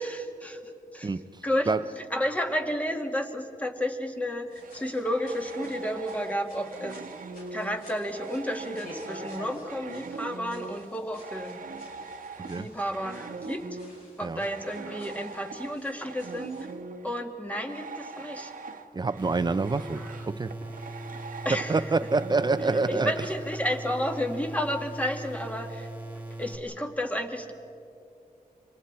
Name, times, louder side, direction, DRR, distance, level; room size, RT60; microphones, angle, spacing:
voice 1, 0.0-1.1 1.4-7.0 7.5-11.6 12.5-13.8 14.2-16.6 17.0-18.5 19.9-20.2 21.4-21.8 22.9-25.9 26.4-27.5, equal, 10° left, 4 dB, 1.9 m, -32 dB
sound 1, 4.4-16.7, left 1 dB, 85° left, 7.2 m, -50 dB
sound 2, 4.6-10.9 11.1-23.6, right 4 dB, 70° right, 1.2 m, -41 dB
voice 2, 12.4-12.7 14.2-14.4 18.9-20.5 21.7-23.1, right 3 dB, 30° right, 13 dB, 0.7 m, -27 dB
sound 3, 19.2-26.6, right 2 dB, 10° right, 2.2 m, -40 dB
29.5 x 26.0 x 4.4 m, 2.6 s
wide cardioid pair, 105°, 15 cm